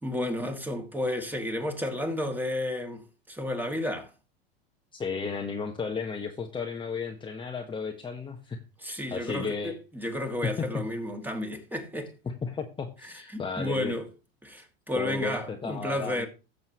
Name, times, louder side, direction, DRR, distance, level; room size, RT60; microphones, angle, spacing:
voice 1, 0.0-4.1 8.8-12.1 13.0-14.1 14.4-16.3, left 1 dB, 5° right, 2.4 m, -32 dB
voice 2, 4.9-8.6 9.1-9.8 10.4-10.7 12.2-13.9 14.9-16.3, left 5 dB, 15° left, 1.3 m, -34 dB
16.0 x 6.8 x 3.1 m
hypercardioid pair, 105°, 30 cm